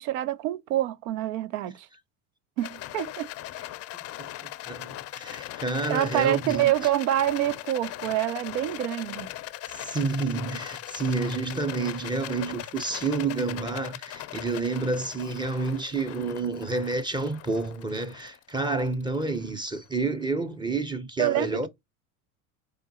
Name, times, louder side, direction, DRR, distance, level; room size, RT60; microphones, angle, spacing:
voice 1, 0.0-1.9 2.6-3.3 5.9-9.3 21.2-21.5, right 13 dB, 80° right, 0.6 m, -26 dB
Rattle, 2.6-19.9, left 15 dB, 35° left, 0.5 m, -40 dB
voice 2, 3.9-6.7 9.7-21.7, right 3 dB, 10° right, 0.6 m, -29 dB
3.9 x 3.5 x 2.7 m
hypercardioid pair, 90°, 43 cm